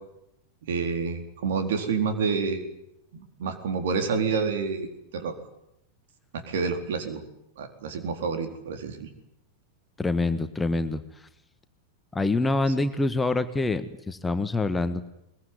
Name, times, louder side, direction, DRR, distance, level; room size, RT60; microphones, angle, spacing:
voice 1, 0.7-2.6 3.1-4.9 5.1-5.4 6.3-7.2 7.6-9.1, right 5 dB, 55° right, 6 dB, 4.2 m, -28 dB
voice 2, 10.0-11.3 12.1-15.1, left 2 dB, 10° left, 9 dB, 1.5 m, -26 dB
22.0 x 21.5 x 9.7 m, 0.83 s
figure-of-eight pair, 90°, 0 cm